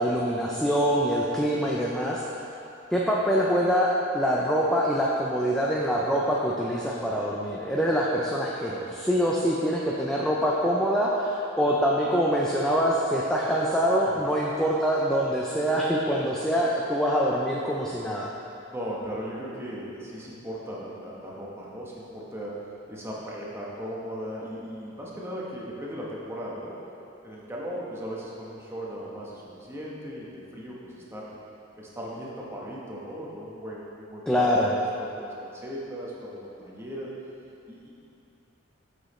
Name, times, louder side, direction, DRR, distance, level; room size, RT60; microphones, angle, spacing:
voice 1, 0.0-2.2 2.9-18.3 34.3-34.7, equal, 5° left, -5 dB, 0.4 m, -25 dB
voice 2, 18.7-26.8 27.2-31.3 31.8-37.1 37.7-37.9, equal, 15° right, -5 dB, 1.0 m, -37 dB
7.9 x 6.3 x 3.1 m, 2.8 s
head